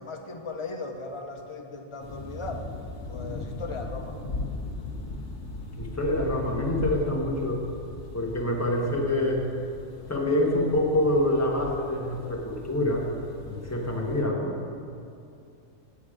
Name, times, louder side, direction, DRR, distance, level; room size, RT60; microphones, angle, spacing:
voice 1, 0.0-2.7 3.1-4.2, left 3 dB, 40° left, 3 dB, 0.4 m, -37 dB
sound 1, 2.0-14.2, left 2 dB, 60° left, 1.3 m, -39 dB
voice 2, 5.8-7.6 8.1-9.4 10.1-13.1 13.4-14.5, left 1 dB, 15° left, -2 dB, 1.0 m, -26 dB
8.5 x 7.5 x 4.9 m, 2.5 s
omnidirectional pair, 1.4 m